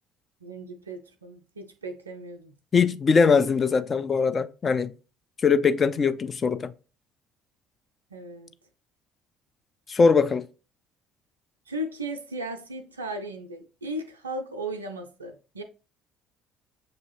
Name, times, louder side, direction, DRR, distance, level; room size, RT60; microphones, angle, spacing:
voice 1, 0.4-2.5 8.1-8.5 11.7-15.6, right 1 dB, 90° right, 0.4 m, -36 dB
voice 2, 2.7-4.9 5.4-6.6 9.9-10.4, left 5 dB, 35° left, 0.4 m, -21 dB
6.4 x 2.6 x 2.9 m
figure-of-eight pair, 55°, 0 cm